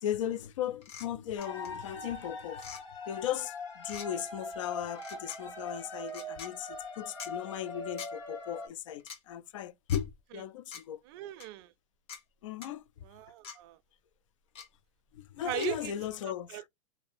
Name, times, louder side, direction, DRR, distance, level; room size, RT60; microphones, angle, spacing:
voice 1, 0.0-2.7 3.1-11.0 12.4-12.9 15.1-16.6, left 10 dB, 70° left, 0.4 m, -37 dB
sound 1, 0.8-1.1 1.4-1.7 2.5-2.8 3.8-4.1 4.9-5.4 6.1-6.5 7.2-7.3 8.0-8.1 9.0-9.2 9.9-10.0 10.7-10.8 11.4-11.5 12.1-12.2 12.6-12.7 13.4-13.6 14.5-14.7 15.6-15.7, left 7 dB, 35° left, 0.9 m, -44 dB
sound 2, 1.4-8.7, left 2 dB, 55° left, 1.6 m, -42 dB
voice 2, 11.1-11.7 13.0-13.8 15.4-15.9 16.2-16.7, right 14 dB, 50° right, 0.4 m, -39 dB
2.6 x 2.0 x 2.5 m
hypercardioid pair, 115°, 17 cm